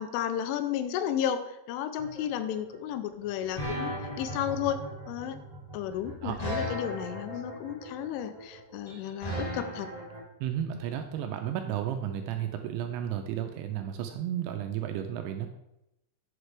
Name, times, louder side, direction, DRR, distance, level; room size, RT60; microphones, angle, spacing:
voice 1, 0.0-5.4 5.7-9.9, left 10 dB, 85° left, 10 dB, 3.0 m, -33 dB
sound 1, 2.0-10.2, equal, 55° left, 0.4 m, -36 dB
voice 2, 10.4-15.5, right 10 dB, 85° right, 6 dB, 2.6 m, -33 dB
7.9 x 7.9 x 3.2 m, 0.87 s
omnidirectional pair, 5.7 m